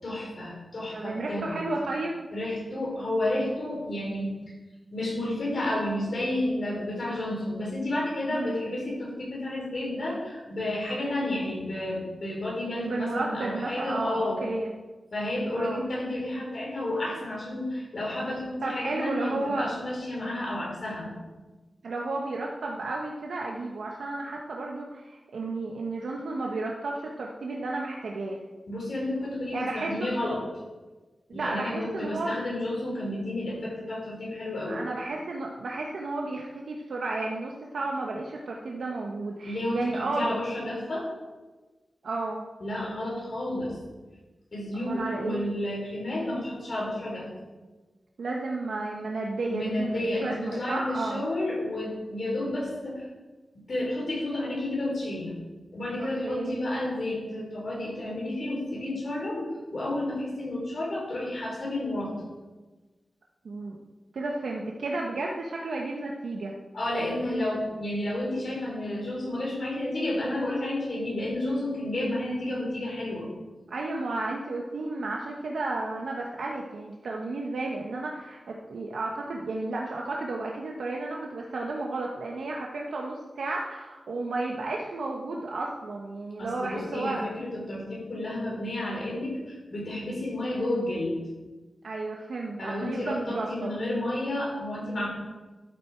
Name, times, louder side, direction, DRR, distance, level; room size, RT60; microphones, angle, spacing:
voice 1, 0.0-1.6 2.3-4.4 4.9-14.4 15.1-21.1 28.7-30.4 31.3-34.8 39.4-41.1 42.6-43.8 44.5-47.3 49.5-53.1 53.5-55.3 55.7-62.2 66.7-73.3 86.4-91.1 92.6-95.1, left 1 dB, 50° left, -3 dB, 4.1 m, -31 dB
voice 2, 0.9-2.3 8.3-8.6 12.8-14.7 15.5-15.8 18.6-19.7 21.8-28.4 29.5-30.3 31.3-32.4 34.7-40.4 42.0-42.4 44.7-45.4 48.2-51.2 56.0-56.6 63.4-63.8 64.1-66.5 73.7-87.2 91.8-93.8, right 2 dB, 85° right, -1 dB, 1.0 m, -32 dB
12.0 x 7.8 x 4.5 m, 1.2 s
wide cardioid pair, 145°, 0 cm